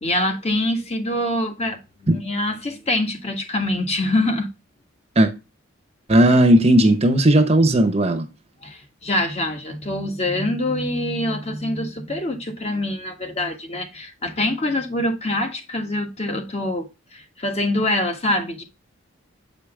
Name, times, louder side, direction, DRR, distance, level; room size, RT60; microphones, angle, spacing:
voice 1, 0.0-4.5 8.6-18.6, left 1 dB, 30° left, 1.5 m, -25 dB
voice 2, 6.1-8.3, right 1 dB, 30° right, 0.8 m, -15 dB
7.9 x 5.0 x 3.3 m
head